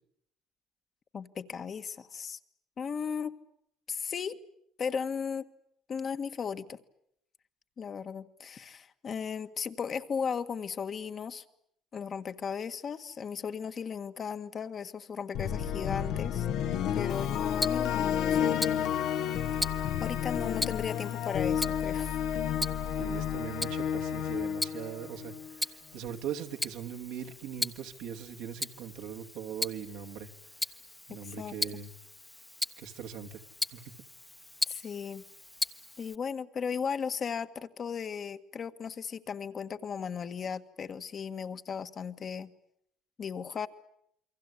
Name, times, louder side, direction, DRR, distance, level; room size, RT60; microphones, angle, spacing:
voice 1, 1.1-2.4 2.8-3.3 3.9-4.4 4.8-5.4 5.9-6.8 7.8-11.4 11.9-16.5 16.9-18.9 20.0-22.1 31.2-31.5 34.7-35.2 36.0-42.5 43.2-43.7, left 6 dB, 40° left, 1.6 m, -36 dB
sound 1, 15.3-25.5, left 9 dB, 75° left, 1.7 m, -31 dB
Tick-tock, 17.1-36.2, left 1 dB, 10° left, 1.2 m, -39 dB
voice 2, 23.0-30.3 31.1-31.9 32.8-33.4 33.7-33.8, right 8 dB, 80° right, 2.7 m, -40 dB
28.5 x 23.5 x 8.4 m
cardioid pair, 105°, 0 cm